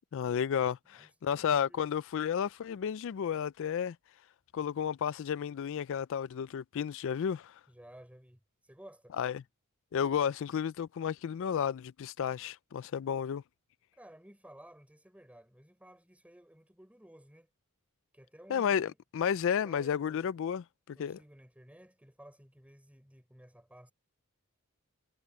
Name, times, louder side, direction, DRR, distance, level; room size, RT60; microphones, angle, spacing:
voice 1, 0.1-4.0 4.5-7.6 9.2-9.4 9.9-13.4 18.5-21.2, left 8 dB, 65° left, 0.3 m, -32 dB
voice 2, 0.9-1.9 7.7-9.2 13.9-17.5 18.1-19.0 19.4-20.3 20.9-23.9, right 1 dB, 5° right, 4.8 m, -56 dB
head